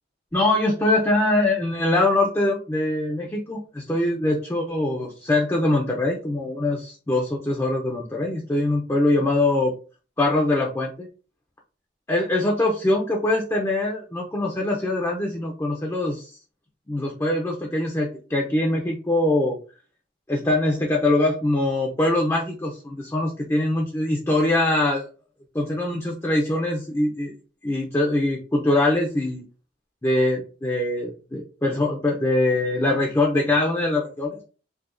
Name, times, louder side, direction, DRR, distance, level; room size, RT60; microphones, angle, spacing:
voice 1, 0.3-9.7 10.2-11.1 12.1-16.4 16.9-19.6 20.3-25.1 25.5-27.3 27.6-29.4 30.0-34.4, left 2 dB, 15° left, 0 dB, 0.5 m, -23 dB
4.7 x 2.2 x 2.5 m, 0.36 s
head